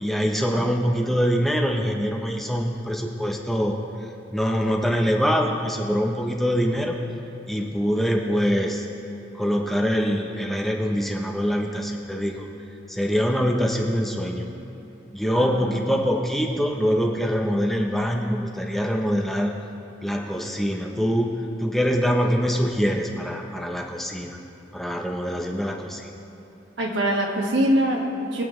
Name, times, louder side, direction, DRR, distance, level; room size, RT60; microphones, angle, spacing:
voice 1, 0.0-3.8 4.3-7.0 7.5-8.8 9.3-12.5 12.9-14.4 15.1-19.6 20.0-24.4 24.7-26.1, equal, ahead, 0 dB, 0.8 m, -24 dB
voice 2, 15.3-15.8 26.8-28.4, equal, 70° right, -1 dB, 1.9 m, -24 dB
23.5 x 8.6 x 3.2 m, 2.9 s
head